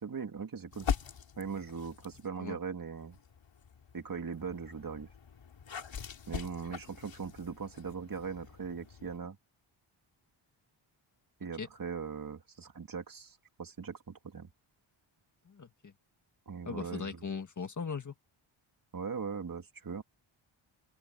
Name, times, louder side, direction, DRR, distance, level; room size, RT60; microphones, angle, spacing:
voice 1, 0.0-0.9 1.4-3.1 3.9-5.1 6.3-9.4 11.4-14.5 16.5-17.3 18.9-20.0, right 6 dB, 45° right, 2.7 m, -40 dB
sound 1, 0.7-2.3 3.0-9.2, left 7 dB, 65° left, 3.2 m, -42 dB
voice 2, 15.5-15.9 16.7-18.1, left 5 dB, 35° left, 1.7 m, -39 dB
open air
wide cardioid pair, 120°, 48 cm